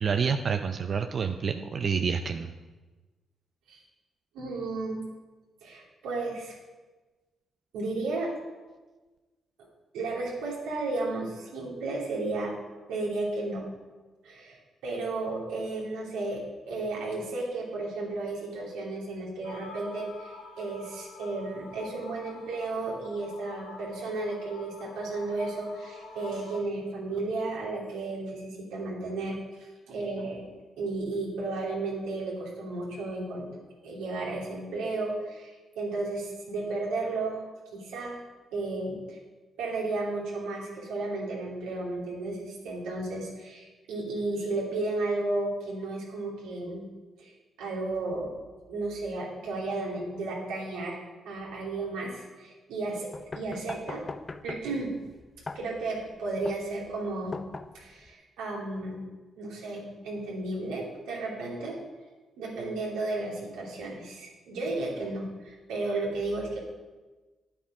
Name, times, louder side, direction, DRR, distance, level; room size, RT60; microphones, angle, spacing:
voice 1, 0.0-2.5, right 6 dB, 55° right, 7 dB, 0.5 m, -28 dB
voice 2, 4.3-5.0 5.6-6.5 7.7-8.3 9.9-12.5 12.9-13.7 14.2-30.4 30.8-33.5 33.8-37.4 37.7-38.2 38.5-39.2 39.6-46.9 47.2-47.3 47.6-48.3 48.7-51.0 51.2-53.1 53.3-54.0 54.4-54.9 55.5-57.4 57.7-59.1 59.4-61.8 62.4-66.6, right 2 dB, 80° right, -3 dB, 2.7 m, -33 dB
sound 1, 19.4-26.6, left 4 dB, 90° left, 1.2 m, -47 dB
sound 2, 53.1-58.1, left 3 dB, 35° left, 0.6 m, -41 dB
9.6 x 8.9 x 4.9 m, 1.2 s
hypercardioid pair, 45°, 0 cm